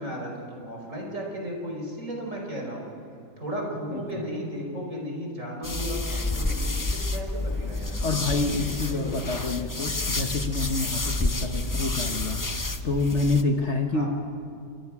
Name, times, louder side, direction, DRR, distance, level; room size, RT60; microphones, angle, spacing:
voice 1, 0.0-2.8 3.4-7.9 8.8-9.3 13.9-14.1, equal, 50° right, 0 dB, 5.2 m, -34 dB
voice 2, 3.9-4.2 8.0-12.4 12.8-14.1, left 3 dB, 50° left, 4 dB, 1.6 m, -27 dB
sound 1, 5.6-13.4, left 2 dB, 20° left, 0.5 m, -29 dB
28.0 x 24.5 x 6.1 m, 2.4 s
omnidirectional pair, 1.7 m